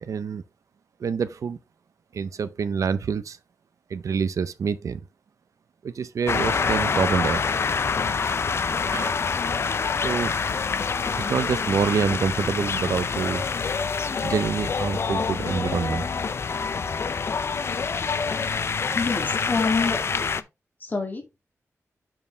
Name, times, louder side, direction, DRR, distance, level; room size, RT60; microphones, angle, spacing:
voice 1, 0.0-0.4 1.0-1.6 2.1-3.4 3.9-5.0 5.8-7.6 8.9-9.2 10.0-10.3 11.2-13.4 14.2-16.1, right 6 dB, 75° right, 0.6 m, -26 dB
sound 1, 6.3-20.4, left 5 dB, 50° left, 0.5 m, -26 dB
voice 2, 18.9-20.5 20.8-21.2, left 4 dB, 35° left, 2.0 m, -27 dB
8.7 x 4.6 x 3.3 m
wide cardioid pair, 160°, 6 cm